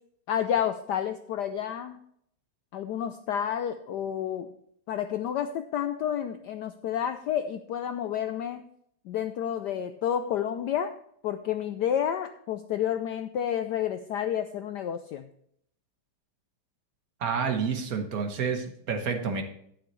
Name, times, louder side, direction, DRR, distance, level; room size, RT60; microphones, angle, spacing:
voice 1, 0.3-2.0 2.7-4.6 4.9-8.6 9.1-10.9 11.2-15.3, left 9 dB, 75° left, 9 dB, 1.0 m, -30 dB
voice 2, 17.2-19.4, right 6 dB, 50° right, 5 dB, 1.4 m, -29 dB
12.0 x 9.4 x 3.1 m, 0.69 s
omnidirectional pair, 2.3 m